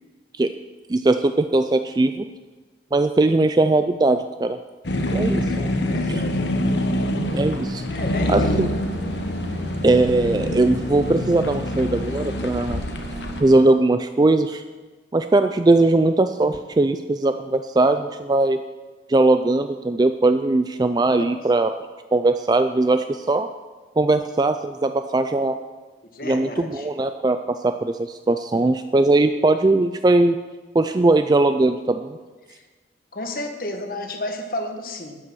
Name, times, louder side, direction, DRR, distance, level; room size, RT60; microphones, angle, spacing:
voice 1, 0.9-2.2 2.9-4.6 5.1-5.7 6.1-6.2 7.3-7.8 8.3-8.7 9.8-12.8 13.4-14.6 15.1-18.6 19.1-21.7 22.1-23.5 24.0-25.6 26.2-30.4 30.7-32.2, right 2 dB, 20° right, 9 dB, 0.3 m, -19 dB
sound 1, 4.8-13.4, left 1 dB, 75° left, 1.2 m, -25 dB
voice 2, 5.9-6.4 7.9-8.5 26.1-26.9 32.5-32.6 33.1-35.2, left 1 dB, 50° left, 4 dB, 1.5 m, -32 dB
sound 2, 7.2-13.6, equal, 65° right, 3.1 m, -37 dB
12.5 x 8.8 x 6.2 m, 1.3 s
head